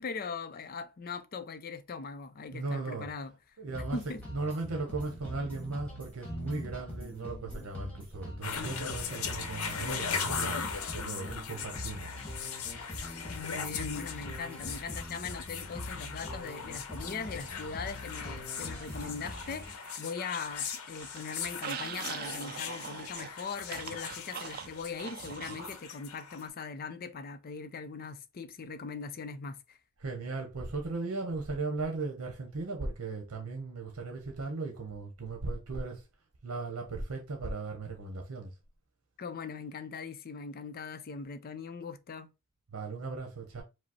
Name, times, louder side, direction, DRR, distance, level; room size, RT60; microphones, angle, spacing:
voice 1, 0.0-3.3 3.9-4.2 13.3-29.8 39.2-42.3, left 5 dB, 45° left, 0.5 m, -40 dB
voice 2, 2.5-3.1 3.6-4.0 4.3-10.6 10.9-12.1 30.0-36.1 36.4-38.5 42.7-43.6, right 3 dB, 75° right, 0.9 m, -37 dB
sound 1, 3.7-19.7, left 1 dB, 5° left, 1.3 m, -43 dB
sound 2, 8.4-26.5, left 6 dB, 80° left, 0.7 m, -39 dB
sound 3, 18.7-20.1 20.4-25.7, right 7 dB, 45° right, 0.4 m, -43 dB
5.1 x 2.0 x 4.1 m
head